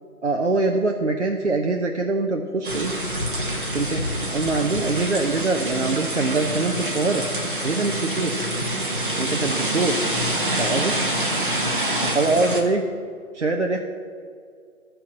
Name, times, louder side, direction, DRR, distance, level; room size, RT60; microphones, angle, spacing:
voice 1, 0.2-2.9 3.7-7.2 7.6-8.4 9.2-10.0 10.6-11.0 12.0-12.8 13.3-13.8, right 3 dB, 55° right, 2 dB, 0.6 m, -23 dB
sound 1, 2.6-12.6, right 1 dB, 35° right, 1.0 m, -26 dB
11.5 x 4.5 x 6.3 m, 2.1 s
figure-of-eight pair, 165°, 43 cm